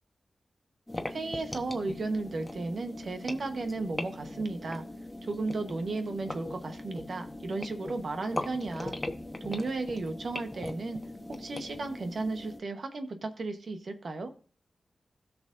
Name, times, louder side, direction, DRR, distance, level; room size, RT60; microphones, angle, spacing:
sound 1, 0.9-12.6, left 1 dB, 15° left, 1.1 m, -40 dB
voice 1, 1.1-4.8 5.2-9.0 9.4-11.0 11.4-14.4, right 3 dB, 65° right, 6 dB, 1.1 m, -34 dB
16.5 x 6.1 x 2.6 m, 0.41 s
cardioid pair, 70°, 0 cm